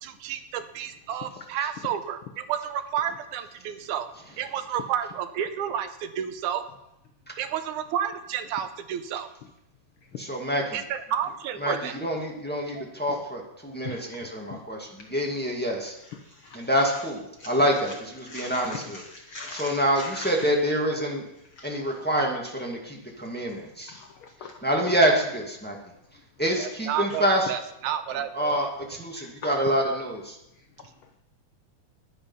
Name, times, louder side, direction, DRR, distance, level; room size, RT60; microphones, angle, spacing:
voice 1, 0.0-4.1 4.4-6.6 7.4-9.3 10.7-12.0 12.8-12.9 26.6-28.6, right 9 dB, 80° right, 10 dB, 2.2 m, -31 dB
voice 2, 10.1-10.8 11.6-15.9 16.5-19.0 19.3-21.2 21.6-24.0 24.6-25.8 26.4-27.5 28.3-30.4, equal, 5° left, 0 dB, 1.2 m, -27 dB
voice 3, 16.2-16.6 18.3-19.7 20.0-20.3 21.6-21.7 23.9-24.6 29.2-29.5, left 4 dB, 80° left, 6 dB, 1.1 m, -40 dB
11.0 x 10.0 x 5.7 m, 0.85 s
omnidirectional pair, 3.5 m